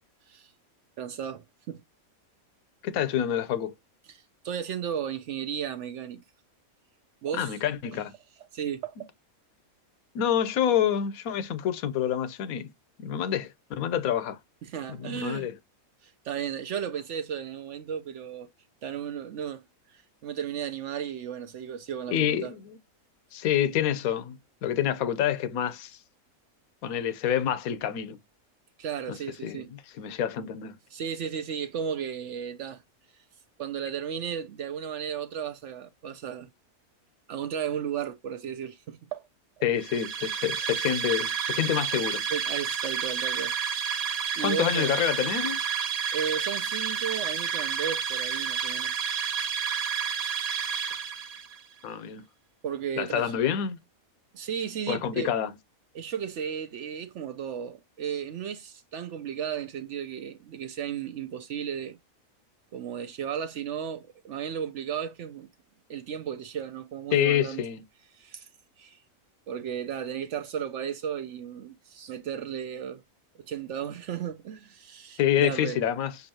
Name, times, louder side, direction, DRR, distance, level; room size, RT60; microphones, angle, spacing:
voice 1, 1.0-1.8 4.1-6.2 7.2-7.6 8.5-9.1 14.6-15.5 16.0-18.5 18.8-22.5 28.8-29.7 30.9-32.8 33.6-36.5 37.3-39.3 42.3-43.5 44.4-44.9 46.1-49.0 52.6-53.3 54.3-55.3 55.9-62.0 62.7-65.5 65.9-67.6 68.1-68.5 68.8-69.0 69.5-73.0 73.5-75.8, right 8 dB, 65° right, 0.8 m, -34 dB
voice 2, 2.8-3.7 7.3-8.1 10.1-12.7 13.0-14.4 14.9-15.6 22.1-22.8 23.3-26.0 26.8-28.2 29.1-29.2 29.4-30.8 39.6-42.2 44.4-45.6 51.8-52.2 53.0-53.8 54.9-55.5 67.1-67.8 75.2-76.1, left 10 dB, 80° left, 1.1 m, -27 dB
sound 1, 39.8-51.6, right 7 dB, 90° right, 0.3 m, -30 dB
7.0 x 2.7 x 2.8 m
omnidirectional pair, 1.5 m